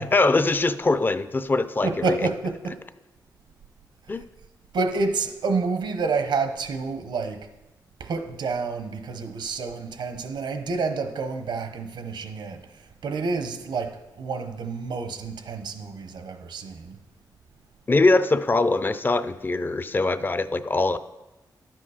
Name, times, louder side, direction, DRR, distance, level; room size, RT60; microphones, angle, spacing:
voice 1, 0.0-2.3 4.1-4.2 17.9-21.0, left 3 dB, 25° left, 0.5 m, -22 dB
voice 2, 1.8-2.8 4.7-7.5 8.0-12.6 13.0-17.0, right 4 dB, 85° right, 1.0 m, -29 dB
11.5 x 7.5 x 5.0 m
wide cardioid pair, 100°, 7 cm